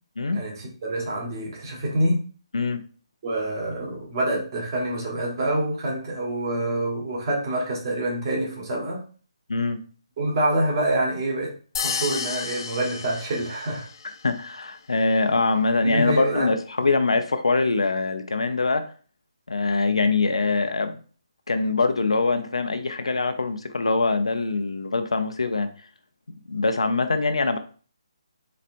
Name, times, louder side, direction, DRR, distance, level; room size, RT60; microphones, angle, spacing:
voice 1, 0.3-2.3 3.2-9.0 10.2-11.5 11.8-13.9 15.8-16.5, right 1 dB, 40° right, 1.6 m, -26 dB
sound 1, 11.7-14.0, left 6 dB, 45° left, 0.4 m, -31 dB
voice 2, 14.2-18.8 19.5-21.0 21.5-25.7 26.5-27.6, left 3 dB, 85° left, 0.6 m, -23 dB
4.2 x 3.3 x 2.6 m
hypercardioid pair, 155°, 3 cm